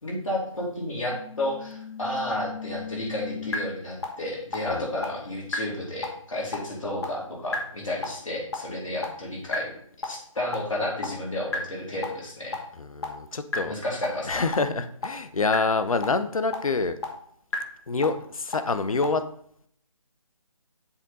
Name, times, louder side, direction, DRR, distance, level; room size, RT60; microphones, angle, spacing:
voice 1, 0.0-9.7 10.0-12.6 13.6-14.5, left 1 dB, 70° left, -3 dB, 2.7 m, -32 dB
sound 1, 1.1-3.5 4.0-4.1 4.5-4.6 5.0-5.1 5.5-5.6 6.0-6.1 6.5-6.6 7.0-7.1 7.5-7.6 8.0-8.1 8.5-8.6 9.0-9.1 9.5-9.6 10.0-10.1 10.5-10.6 11.0-11.1 11.5-11.6 12.0-12.1 12.5-12.6 13.0-13.1 13.5-13.6 14.0-14.1 14.5-14.6 15.0-15.1 15.5-15.6 16.0-16.1 16.5-16.6 17.0-17.1 17.5-17.6 18.0-18.1 18.5-18.6 19.0-19.1, left 6 dB, 55° left, 1.2 m, -32 dB
voice 2, 12.8-13.8 14.2-17.0 17.9-19.2, left 4 dB, 90° left, 11 dB, 0.7 m, -26 dB
7.2 x 3.8 x 4.0 m, 0.64 s
figure-of-eight pair, 160°, 17 cm